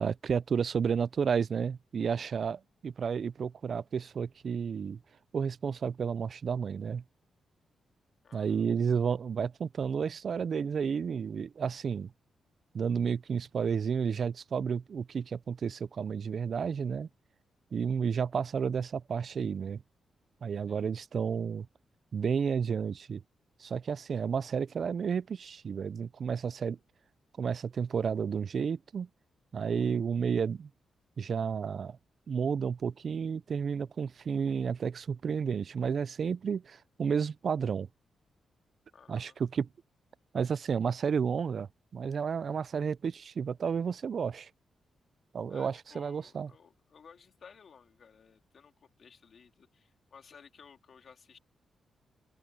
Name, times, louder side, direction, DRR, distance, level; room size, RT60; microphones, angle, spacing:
voice 1, 0.0-5.0 5.3-7.0 8.3-12.1 12.7-17.1 17.7-19.8 20.4-21.7 22.1-23.2 23.6-26.8 27.4-29.1 29.5-30.7 31.2-32.0 32.3-37.9 39.1-39.7 40.3-41.7 41.9-44.5 45.3-46.5, right 6 dB, 50° right, 0.4 m, -31 dB
voice 2, 8.2-8.7 20.7-20.9 38.9-39.4 45.5-51.4, left 6 dB, 55° left, 3.1 m, -56 dB
open air
cardioid pair, 110°, 0 cm